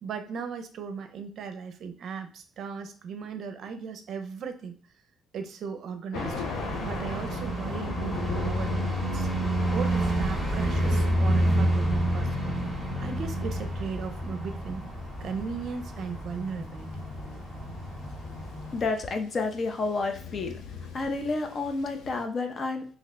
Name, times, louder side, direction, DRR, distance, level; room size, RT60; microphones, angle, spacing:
voice 1, 0.0-4.8 5.3-6.4 6.8-9.3 9.7-12.5 13.0-14.8 15.2-16.9, right 6 dB, 60° right, 7 dB, 0.5 m, -37 dB
Thunder, 6.1-22.2, left 5 dB, 85° left, 0.5 m, -42 dB
sound 1, 6.1-18.9, right 1 dB, 10° left, 1.0 m, -29 dB
voice 2, 18.7-20.6 20.9-22.9, left 3 dB, 45° left, 5 dB, 0.5 m, -30 dB
2.7 x 2.2 x 3.9 m, 0.42 s
cardioid pair, 90°, 0 cm